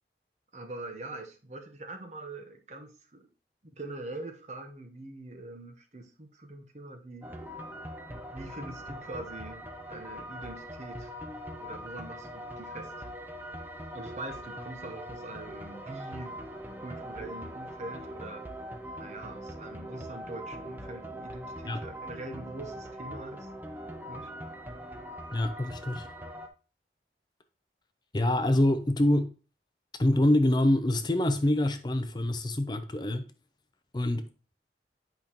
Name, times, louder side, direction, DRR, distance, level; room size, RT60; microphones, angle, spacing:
voice 1, 0.5-3.3 3.6-7.3 8.3-11.1 11.6-12.9 13.9-16.3 16.8-18.5 18.9-23.5 24.1-24.3, right 2 dB, 40° right, 1.0 m, -43 dB
sound 1, 7.2-26.5, equal, 10° right, 0.8 m, -42 dB
voice 2, 25.3-26.1 28.1-29.3 30.0-33.3 33.9-34.3, left 1 dB, 25° left, 0.5 m, -25 dB
8.6 x 5.2 x 3.0 m
head